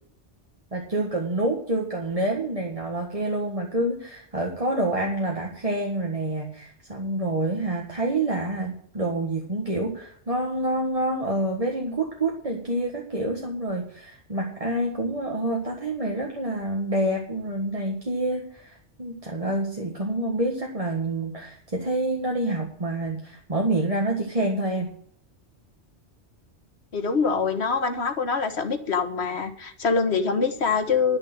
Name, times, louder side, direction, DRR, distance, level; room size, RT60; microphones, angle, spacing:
voice 1, 0.7-24.9, right 1 dB, 30° right, 0 dB, 1.7 m, -27 dB
voice 2, 26.9-31.2, left 5 dB, 70° left, 8 dB, 1.7 m, -24 dB
11.5 x 6.8 x 7.8 m, 0.62 s
omnidirectional pair, 1.2 m